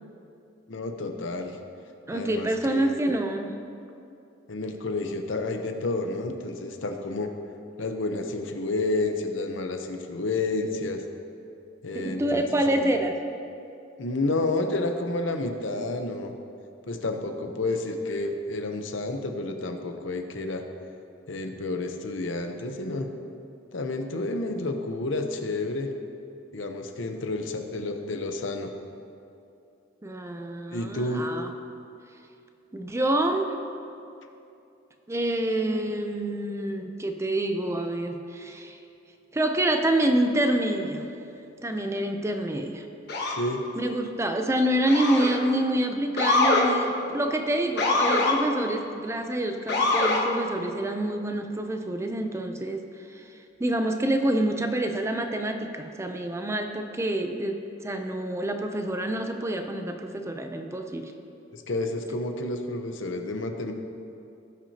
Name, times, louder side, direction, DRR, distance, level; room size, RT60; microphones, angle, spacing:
voice 1, 0.7-1.5 2.1-3.0 4.5-7.3 7.8-11.0 11.8-12.9 14.0-16.3 16.9-20.6 21.3-23.1 23.7-25.9 26.5-28.7 30.7-31.3 43.3-43.7 61.5-63.7, left 2 dB, 80° left, 5 dB, 0.8 m, -30 dB
voice 2, 2.1-3.6 11.9-13.2 30.0-31.5 32.7-33.5 35.1-38.8 39.3-41.1 41.6-42.9 43.8-52.8 53.1-53.2 53.6-61.1, right 1 dB, 15° right, 5 dB, 0.5 m, -27 dB
Motor vehicle (road) / Siren, 43.1-43.5 44.9-45.4 46.2-46.7 47.8-48.4 49.7-50.2, left 2 dB, 60° left, 1.3 m, -23 dB
17.5 x 6.0 x 2.8 m, 2.7 s
head